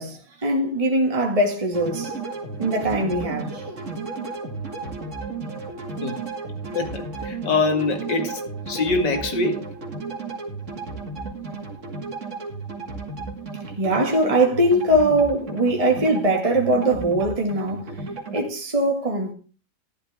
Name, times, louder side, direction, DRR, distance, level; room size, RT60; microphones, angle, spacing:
voice 1, 0.0-2.1 2.6-3.6 13.8-17.9 18.3-19.3, right 1 dB, 20° right, 1.9 m, -21 dB
sound 1, 1.7-18.5, right 3 dB, 45° right, 2.6 m, -33 dB
voice 2, 6.7-8.4 8.7-9.7, left 3 dB, 85° left, 2.6 m, -24 dB
13.0 x 11.5 x 3.6 m
omnidirectional pair, 1.8 m